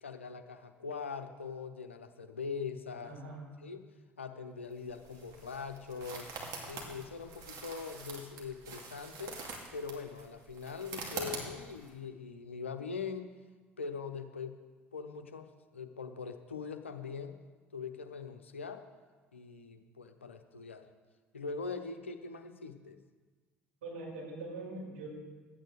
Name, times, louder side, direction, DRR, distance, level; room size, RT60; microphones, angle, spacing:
voice 1, 0.0-3.2 3.6-3.9 4.2-6.3 6.7-9.4 9.7-13.3 13.8-14.6 14.9-17.4 17.7-18.8 19.3-20.9 21.3-23.0, left 5 dB, 90° left, 7 dB, 0.8 m, -42 dB
voice 2, 3.0-3.4 23.8-25.1, right 2 dB, 75° right, -3 dB, 4.8 m, -42 dB
sound 1, 4.7-11.9, right 4 dB, 60° right, 2.5 m, -45 dB
12.5 x 9.1 x 6.5 m, 1.4 s
figure-of-eight pair, 60°, 6 cm